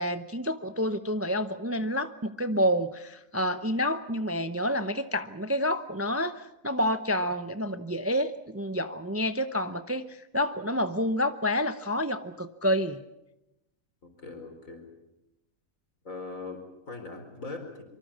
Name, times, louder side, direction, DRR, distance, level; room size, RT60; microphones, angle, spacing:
voice 1, 0.0-13.0, equal, 15° right, 10 dB, 0.7 m, -29 dB
voice 2, 14.0-14.8 16.0-17.8, left 3 dB, 70° left, 5 dB, 4.8 m, -40 dB
24.5 x 24.0 x 7.4 m, 0.92 s
omnidirectional pair, 1.4 m